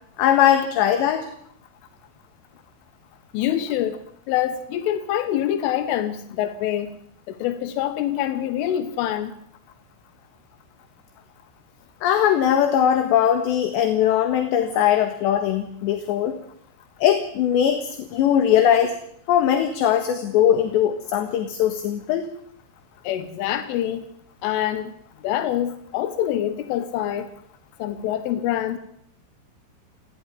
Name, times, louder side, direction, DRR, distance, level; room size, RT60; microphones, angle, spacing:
voice 1, 0.2-1.3 12.0-16.4 17.0-18.9 19.3-22.2, left 10 dB, 70° left, 7 dB, 3.7 m, -20 dB
voice 2, 3.3-4.0 4.3-6.9 7.3-9.3 23.1-24.0 24.4-24.9 25.2-27.3 27.8-28.8, left 11 dB, 90° left, 9 dB, 3.8 m, -25 dB
30.0 x 12.0 x 9.6 m, 0.71 s
omnidirectional pair, 5.5 m